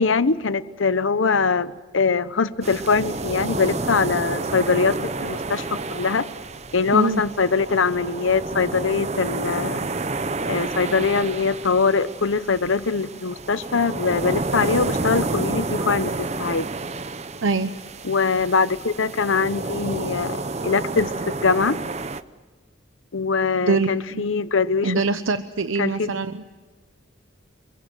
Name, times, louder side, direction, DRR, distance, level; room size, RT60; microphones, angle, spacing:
voice 1, 0.0-6.3 6.7-9.9 10.5-16.7 18.0-21.8 23.1-24.9 25.8-26.1, left 4 dB, 80° left, 15 dB, 0.8 m, -22 dB
sound 1, 2.6-22.2, right 3 dB, 35° right, 0.8 m, -30 dB
voice 2, 6.9-7.2 17.4-17.7 23.7-24.3 24.8-26.4, right 3 dB, 85° right, 11 dB, 0.9 m, -23 dB
28.5 x 22.5 x 7.6 m, 1.3 s
head